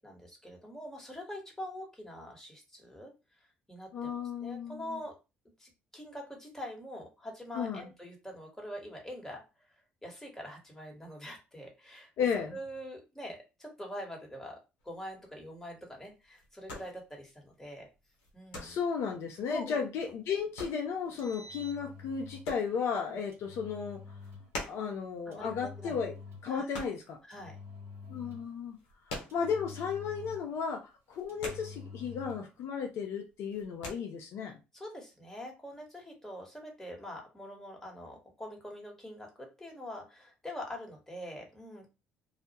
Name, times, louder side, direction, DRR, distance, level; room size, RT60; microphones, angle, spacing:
voice 1, 0.0-3.1 3.4-4.1 4.4-5.2 5.6-9.4 10.0-12.1 12.5-14.6 14.8-17.9 18.3-18.8 19.5-19.8 23.1-23.2 25.3-26.0 26.5-26.7 27.3-27.6 34.7-41.9, equal, 10° left, 1.1 m, -44 dB
voice 2, 3.9-5.0 7.5-7.9 12.2-12.6 18.6-24.0 24.6-26.1 26.4-27.2 28.1-28.8 29.3-34.6, left 6 dB, 60° left, 0.4 m, -34 dB
sound 1, 14.8-27.8 28.0-30.0 30.2-30.4 30.7-32.3 32.5-33.0 33.3-33.9, left 2 dB, 80° left, 0.8 m, -45 dB
Engine, 21.0-22.5 23.3-24.5 25.3-26.6 27.3-28.6 29.3-30.6 31.3-32.5, left 4 dB, 55° right, 0.7 m, -48 dB
2.2 x 2.0 x 2.8 m
hypercardioid pair, 55°, 5 cm